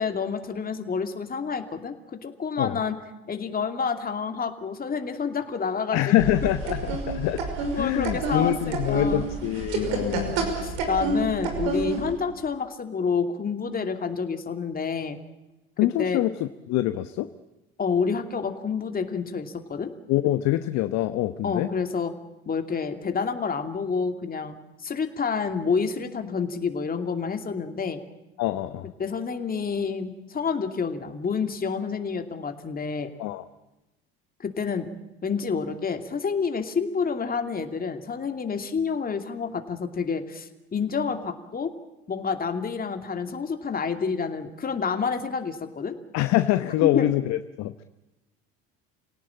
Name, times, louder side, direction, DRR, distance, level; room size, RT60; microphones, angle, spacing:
voice 1, 0.0-3.0 3.3-6.2 6.4-6.5 7.7-9.3 10.0-15.2 16.0-16.2 17.8-19.9 21.4-22.1 22.5-24.6 24.8-28.0 29.0-33.1 34.4-34.9 35.2-41.7 42.1-46.0 46.9-47.1, left 5 dB, 25° left, 6 dB, 2.6 m, -28 dB
voice 2, 5.9-7.4 7.7-10.3 15.8-17.3 20.1-21.7 28.4-28.9 33.2-33.5 46.1-47.8, left 15 dB, 55° left, 11 dB, 1.0 m, -25 dB
sound 1, 6.2-12.1, right 3 dB, 70° right, 5.9 m, -29 dB
28.5 x 18.0 x 8.8 m, 1.0 s
hypercardioid pair, 70°, 32 cm